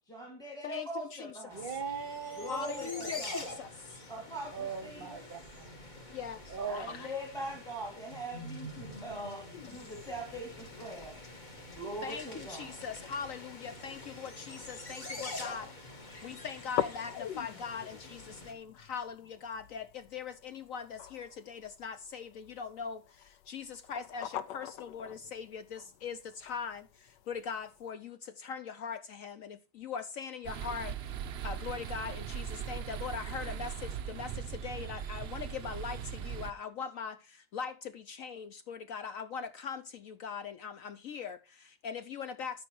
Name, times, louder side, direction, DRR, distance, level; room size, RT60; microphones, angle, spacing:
voice 1, 0.1-1.6 2.4-3.5 4.1-5.2 6.7-11.1 11.8-12.7, right 1 dB, ahead, 2.0 m, -42 dB
voice 2, 0.6-1.3 2.5-4.0 6.1-7.1 12.0-30.9 31.4-42.7, left 6 dB, 60° left, 0.9 m, -41 dB
sound 1, 1.5-18.5, left 1 dB, 25° left, 1.6 m, -46 dB
voice 3, 1.5-3.2 4.5-5.8 6.5-7.1 8.9-9.0, right 6 dB, 35° right, 1.0 m, -40 dB
sound 2, 9.5-27.9, left 11 dB, 90° left, 1.3 m, -45 dB
sound 3, 30.4-36.5, right 9 dB, 75° right, 0.6 m, -39 dB
13.0 x 5.4 x 4.4 m
omnidirectional pair, 1.8 m